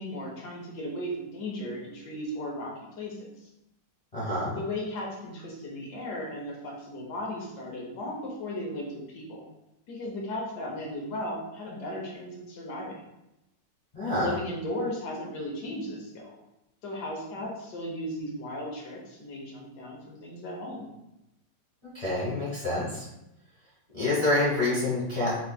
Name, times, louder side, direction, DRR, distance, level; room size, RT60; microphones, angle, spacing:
voice 1, 0.0-3.5 4.6-9.4 9.9-13.0 14.1-16.4 16.8-20.9, left 1 dB, 65° left, -2 dB, 1.4 m, -36 dB
voice 2, 4.1-4.5 13.9-14.3 21.9-23.0 23.9-25.4, left 2 dB, 20° left, -10 dB, 1.3 m, -27 dB
4.2 x 3.2 x 2.3 m, 0.88 s
omnidirectional pair, 1.9 m